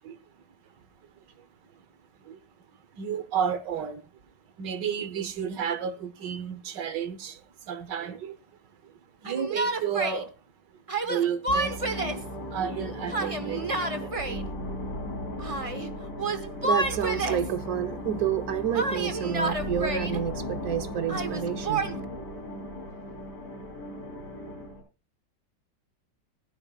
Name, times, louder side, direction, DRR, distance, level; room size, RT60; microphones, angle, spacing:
voice 1, 3.0-4.0 4.6-8.4 8.8-8.9 9.2-10.3 11.0-12.2 12.5-14.3, right 8 dB, 80° right, 1.7 m, -32 dB
Yell, 9.3-10.2 10.9-12.3 13.1-14.4 15.4-15.9 16.2-17.5 18.7-20.2 21.1-22.0, right 2 dB, 25° right, 0.9 m, -30 dB
sound 1, 11.5-24.8, equal, 70° left, 4.4 m, -36 dB
voice 2, 16.3-21.9, right 9 dB, 60° right, 1.3 m, -29 dB
15.5 x 13.5 x 2.4 m
omnidirectional pair, 1.8 m